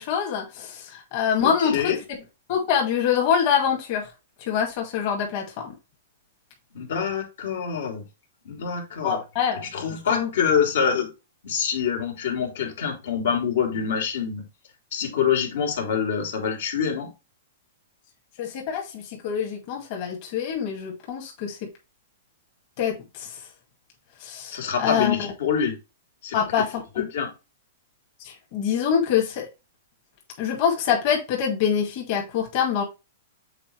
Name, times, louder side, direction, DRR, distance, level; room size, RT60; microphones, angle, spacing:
voice 1, 0.0-1.9 2.5-4.1 4.4-5.7 9.0-9.7 10.1-10.3 18.4-21.6 22.8-23.4 24.2-25.3 26.3-27.1 28.2-29.5 30.4-32.8, left 7 dB, 45° left, 2.1 m, -25 dB
voice 2, 1.4-2.0 6.7-8.0 8.4-9.2 9.7-11.1 11.4-14.4 14.9-17.1 24.5-25.8 26.2-26.4 27.0-27.3, left 7 dB, 75° left, 2.9 m, -25 dB
7.4 x 4.2 x 3.2 m
hypercardioid pair, 150°, 0 cm